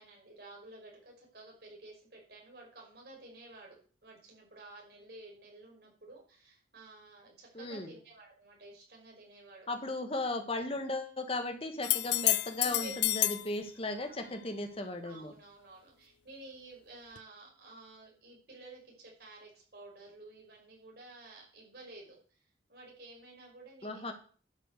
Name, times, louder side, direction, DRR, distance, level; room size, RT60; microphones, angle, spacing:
voice 1, 0.0-3.8 4.0-9.7 12.6-12.9 13.9-14.1 15.0-22.4 22.7-24.1, right 2 dB, 60° right, -1 dB, 5.7 m, -52 dB
voice 2, 7.5-7.9 9.7-15.3 23.8-24.1, left 2 dB, 30° left, 6 dB, 1.7 m, -36 dB
sound 1, 11.8-13.5 17.2-17.3, left 16 dB, 70° left, 0.5 m, -29 dB
11.5 x 6.6 x 6.8 m, 0.42 s
head